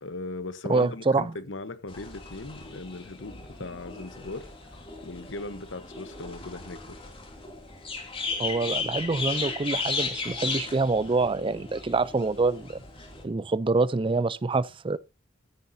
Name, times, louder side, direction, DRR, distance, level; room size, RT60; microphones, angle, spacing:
voice 1, 0.0-4.5 5.0-7.0, left 2 dB, 70° left, 1.1 m, -38 dB
voice 2, 0.7-1.3 8.4-12.8 13.2-15.0, right 3 dB, 25° right, 0.5 m, -26 dB
sound 1, 1.9-13.2, left 4 dB, 30° left, 2.6 m, -36 dB
14.0 x 9.8 x 2.7 m
head